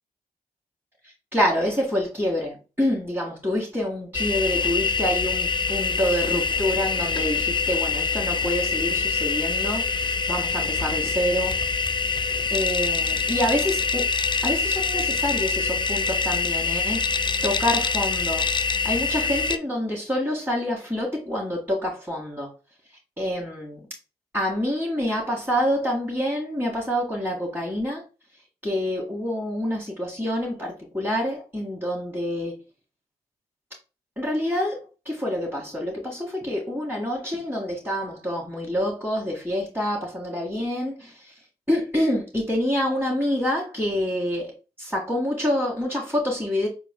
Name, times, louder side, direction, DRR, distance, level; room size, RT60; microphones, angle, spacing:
voice 1, 1.3-11.6 12.5-14.1 14.4-18.5 18.8-22.5 23.2-23.8 24.3-28.0 28.6-32.6 34.2-41.3 41.7-44.5 44.8-46.7, left 1 dB, 10° right, 1.7 m, -27 dB
sound 1, 4.1-19.6, left 4 dB, 30° left, 0.4 m, -25 dB
4.2 x 2.4 x 3.7 m
supercardioid pair, 40°, 17 cm